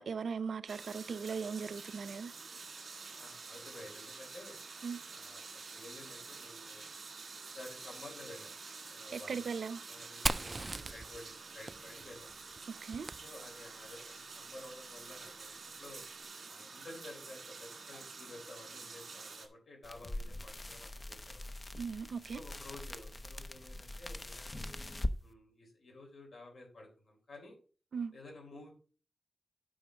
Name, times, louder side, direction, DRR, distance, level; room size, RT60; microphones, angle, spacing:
voice 1, 0.0-2.3 4.8-5.0 9.1-9.8 12.7-13.1 21.7-22.4 27.9-28.1, right 5 dB, 85° right, 0.6 m, -38 dB
sound 1, 0.7-19.5, right 4 dB, 60° right, 1.9 m, -49 dB
voice 2, 3.2-4.6 5.1-5.4 5.7-6.9 7.5-8.5 8.9-9.5 9.9-12.3 13.2-15.5 15.8-16.0 16.5-21.5 22.3-24.6 25.2-27.6 28.1-28.7, left 2 dB, 80° left, 3.8 m, -52 dB
Fire, 10.3-13.9, right 2 dB, 30° right, 0.3 m, -40 dB
sound 2, 19.8-25.2, left 1 dB, 25° left, 0.6 m, -42 dB
9.4 x 5.1 x 5.1 m
wide cardioid pair, 135°, 0 cm